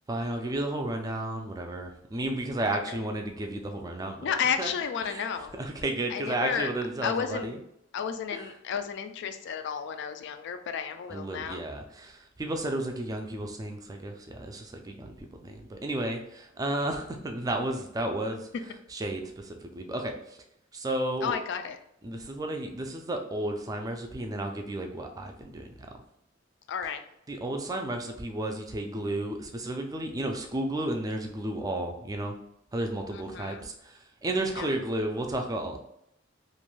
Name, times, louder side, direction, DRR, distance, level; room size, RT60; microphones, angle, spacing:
voice 1, 0.1-4.7 5.0-5.3 5.6-7.6 8.3-8.5 11.1-18.5 18.9-20.4 20.7-21.3 22.0-25.9 27.3-32.3 32.7-35.8, right 1 dB, 20° right, 4 dB, 0.4 m, -33 dB
voice 2, 4.2-5.5 6.1-6.7 7.0-7.6 7.9-11.6 21.2-21.8 26.7-27.0 33.1-33.7 34.5-34.7, left 7 dB, 65° left, 8 dB, 0.3 m, -32 dB
2.5 x 2.2 x 3.1 m, 0.77 s
head